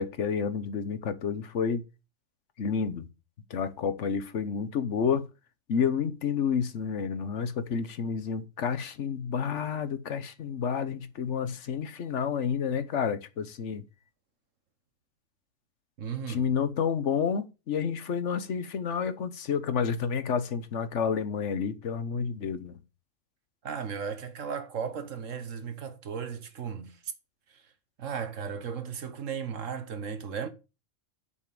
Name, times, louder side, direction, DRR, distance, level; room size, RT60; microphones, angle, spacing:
voice 1, 0.0-1.8 2.6-3.1 3.5-5.3 5.7-13.8 16.3-22.8, left 6 dB, 70° left, 1.3 m, -30 dB
voice 2, 16.0-16.5 23.6-27.1 27.5-27.6 28.0-30.5, right 6 dB, 85° right, 1.6 m, -35 dB
6.9 x 5.6 x 6.8 m
omnidirectional pair, 1.3 m